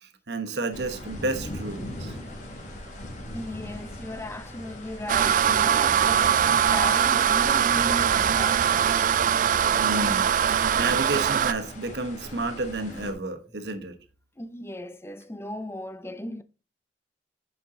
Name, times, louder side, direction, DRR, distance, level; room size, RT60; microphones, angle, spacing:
voice 1, 0.0-2.1 9.8-13.9, right 2 dB, 65° right, 1.1 m, -31 dB
sound 1, 0.7-13.1, left 1 dB, 45° left, 2.2 m, -40 dB
voice 2, 3.3-9.0 14.4-16.4, left 1 dB, 15° left, 0.5 m, -37 dB
sound 2, 5.1-11.5, right 8 dB, 45° right, 0.3 m, -22 dB
8.6 x 5.4 x 3.7 m
head